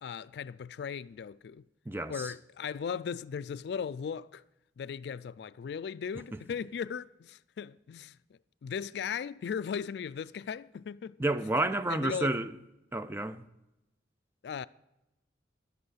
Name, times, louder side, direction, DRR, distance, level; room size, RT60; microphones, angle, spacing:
voice 1, 0.0-1.6 2.1-4.4 4.8-8.2 8.6-11.2 11.9-12.3 14.4-14.7, left 7 dB, 60° left, 0.3 m, -37 dB
voice 2, 1.9-2.3 11.2-12.5 12.9-13.4, right 2 dB, 10° right, 0.4 m, -30 dB
11.0 x 7.8 x 6.3 m
head